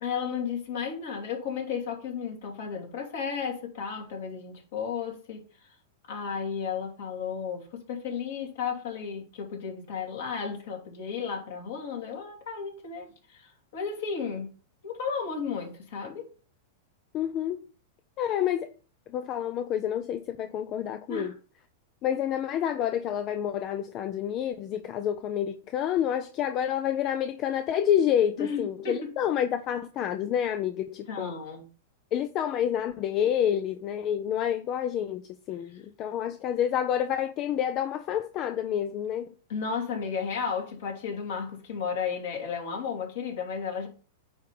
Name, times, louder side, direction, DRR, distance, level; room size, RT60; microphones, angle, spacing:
voice 1, 0.0-5.4 6.1-14.5 14.8-16.3 21.1-21.3 28.4-29.1 31.1-31.7 39.5-43.9, left 6 dB, 65° left, 2.8 m, -33 dB
voice 2, 17.1-17.6 18.2-18.7 19.1-21.3 22.0-31.3 32.1-35.2 35.5-39.3, left 10 dB, 40° left, 0.6 m, -28 dB
9.5 x 3.4 x 5.4 m
hypercardioid pair, 105°, 0 cm